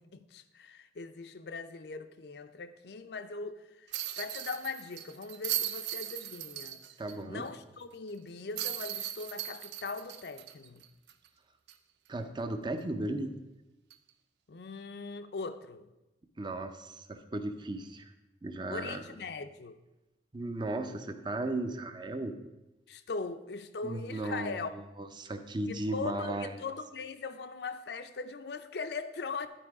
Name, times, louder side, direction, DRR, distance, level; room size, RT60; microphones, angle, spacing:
voice 1, 0.0-3.9 4.2-6.8 7.3-10.9 14.5-15.9 18.7-19.8 22.9-24.7 25.7-29.5, left 4 dB, 65° left, 0.5 m, -40 dB
sound 1, 3.9-7.1 7.5-7.6 8.6-11.3 11.7-11.8 13.9-14.1, right 12 dB, 70° right, 0.5 m, -38 dB
voice 2, 7.0-7.5 12.1-13.3 16.4-18.1 18.4-19.0 20.3-22.3 23.8-24.7 25.0-26.5, right 2 dB, 25° right, 0.6 m, -36 dB
11.0 x 4.7 x 4.8 m
head